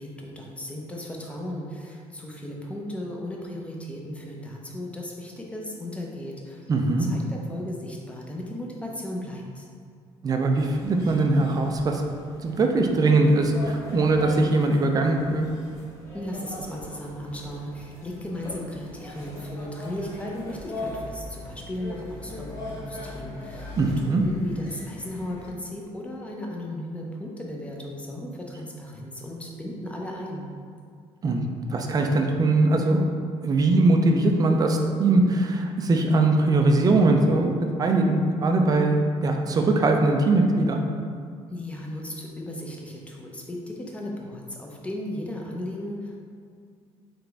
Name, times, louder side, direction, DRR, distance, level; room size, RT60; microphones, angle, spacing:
voice 1, 0.0-6.7 7.0-9.7 16.1-30.5 41.5-46.2, left 1 dB, 10° left, -1 dB, 0.7 m, -36 dB
voice 2, 6.7-7.1 10.2-12.0 12.4-15.5 23.8-24.2 31.2-31.4 31.7-33.0 33.4-37.5 37.8-40.8, right 2 dB, 30° right, 3 dB, 0.4 m, -21 dB
sound 1, 10.6-25.5, left 1 dB, 25° left, 1.1 m, -40 dB
4.0 x 3.4 x 3.4 m, 2.2 s
cardioid pair, 115°, 12 cm